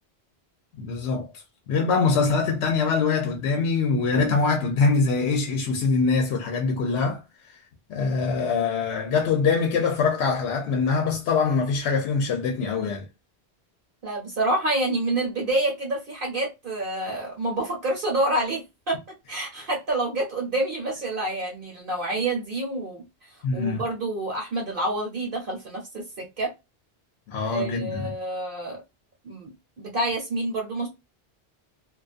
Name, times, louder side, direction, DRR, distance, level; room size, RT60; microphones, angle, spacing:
voice 1, 0.8-7.6 7.9-13.1 23.4-23.8 27.3-28.1, left 4 dB, 85° left, 0.9 m, -24 dB
voice 2, 14.0-19.0 19.3-23.0 23.5-26.5 27.4-28.8 29.2-29.5 29.8-30.9, right 2 dB, 60° right, 0.9 m, -28 dB
2.3 x 2.3 x 2.4 m
omnidirectional pair, 1.1 m